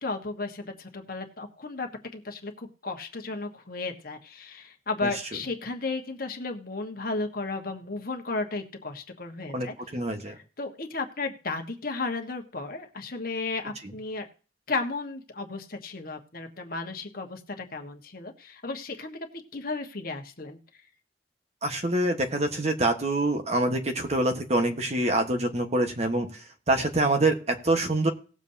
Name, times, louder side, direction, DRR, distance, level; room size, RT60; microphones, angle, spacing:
voice 1, 0.0-9.7 10.3-14.3 14.7-20.6, left 3 dB, 55° left, 4 dB, 1.5 m, -34 dB
voice 2, 9.9-10.4 21.6-26.3 26.7-28.1, right 2 dB, 40° right, 5 dB, 1.4 m, -25 dB
18.5 x 7.2 x 2.8 m, 0.38 s
head